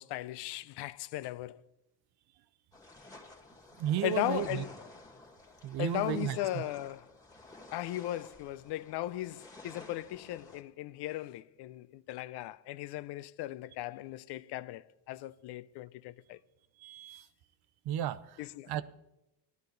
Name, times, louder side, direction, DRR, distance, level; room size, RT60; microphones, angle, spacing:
voice 1, 0.0-1.6 4.0-4.7 5.8-7.1 7.7-16.4 18.4-18.8, left 15 dB, 75° left, 0.5 m, -37 dB
sound 1, 2.7-10.6, left 2 dB, 10° left, 2.0 m, -53 dB
voice 2, 3.8-4.6 5.6-6.7 16.8-17.3 17.9-18.4 18.7-18.8, right 11 dB, 65° right, 0.7 m, -34 dB
15.0 x 11.5 x 3.9 m
cardioid pair, 95°, 41 cm